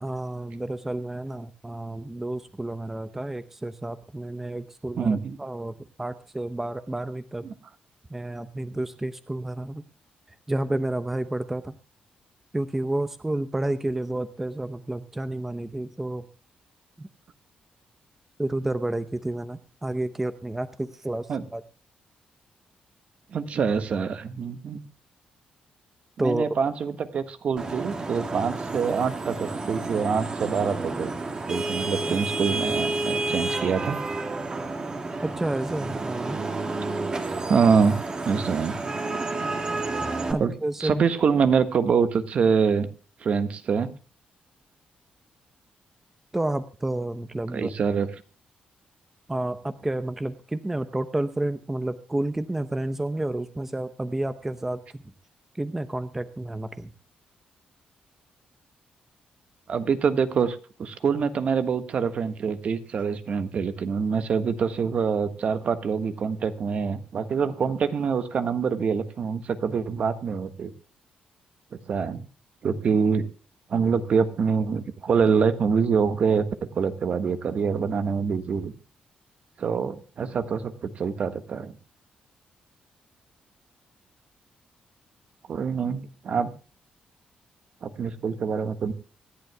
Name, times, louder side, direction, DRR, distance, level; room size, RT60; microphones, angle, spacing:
voice 1, 0.0-7.4 8.1-9.8 10.5-11.7 12.5-16.2 17.0-17.1 18.4-21.6 26.2-26.6 31.3-31.4 32.1-32.2 35.2-36.4 40.3-41.0 46.3-47.7 49.3-55.0 55.5-56.9, right 1 dB, 10° right, 11 dB, 0.7 m, -30 dB
voice 2, 5.0-5.4 7.4-7.5 21.3-21.4 23.3-24.8 26.2-31.2 31.5-34.0 37.5-38.8 40.4-40.5 40.8-42.9 43.2-43.9 47.5-48.1 59.7-70.7 71.9-72.2 72.6-73.3 73.7-76.5 76.7-78.7 79.6-81.7 85.5-86.5 87.8-88.9, right 6 dB, 50° right, 10 dB, 1.4 m, -25 dB
Vehicle horn car horn honking / Traffic noise roadway noise, 27.6-40.3, right 3 dB, 30° right, 1.9 m, -30 dB
25.5 x 11.0 x 2.2 m, 0.36 s
cardioid pair, 135°, 3 cm